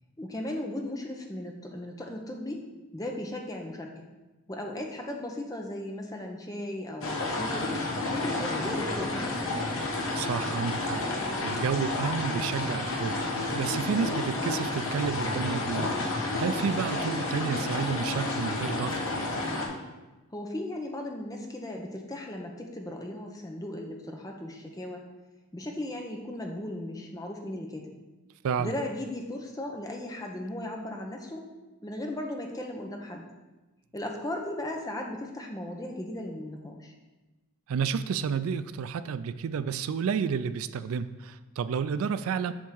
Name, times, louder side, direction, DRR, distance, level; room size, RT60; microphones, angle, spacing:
voice 1, 0.2-4.1 4.5-7.7 8.1-9.6 20.3-25.0 25.5-27.9 28.6-31.5 31.8-33.2 33.9-36.9, left 1 dB, 15° left, 1 dB, 0.7 m, -36 dB
sound 1, 7.0-19.7, left 2 dB, 70° left, 1.3 m, -30 dB
voice 2, 10.1-19.1 28.4-28.7 37.7-42.5, right 6 dB, 75° right, 13 dB, 0.3 m, -31 dB
7.3 x 3.6 x 6.2 m, 1.1 s
head